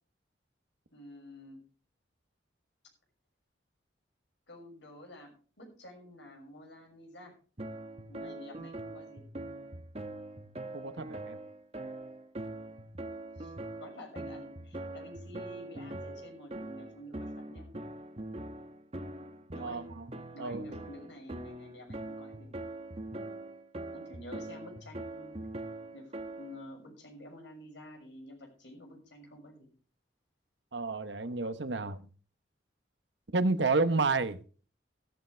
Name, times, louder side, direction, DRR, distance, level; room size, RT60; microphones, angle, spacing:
voice 1, 0.9-1.6 4.5-7.4 8.1-9.3 13.4-13.5 13.8-17.7 19.5-19.9 20.3-22.6 23.9-25.4 25.9-29.7, left 1 dB, 75° left, 6.5 m, -50 dB
sound 1, 7.6-26.6, right 1 dB, 35° right, 1.1 m, -42 dB
voice 2, 10.7-11.4 19.6-20.1 20.4-20.7 30.7-32.1 33.3-34.4, right 3 dB, 75° right, 1.1 m, -30 dB
14.5 x 13.5 x 3.4 m
head